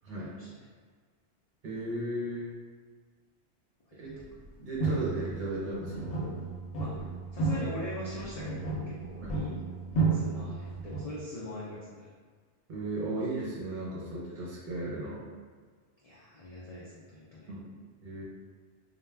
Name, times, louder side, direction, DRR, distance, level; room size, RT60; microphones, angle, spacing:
voice 1, 0.1-0.6 3.9-4.2 6.8-9.8 10.1-12.1 16.0-17.5, left 1 dB, 60° left, -7 dB, 0.4 m, -42 dB
voice 2, 1.6-2.5 4.0-4.1 4.6-6.2 9.2-9.4 12.7-15.2 17.5-17.7 18.0-18.2, right 1 dB, 55° right, -6 dB, 0.7 m, -35 dB
sound 1, 4.2-4.5 4.8-11.0, right 3 dB, 90° left, 0.9 m, -32 dB
2.2 x 2.1 x 3.2 m, 1.6 s
omnidirectional pair, 1.1 m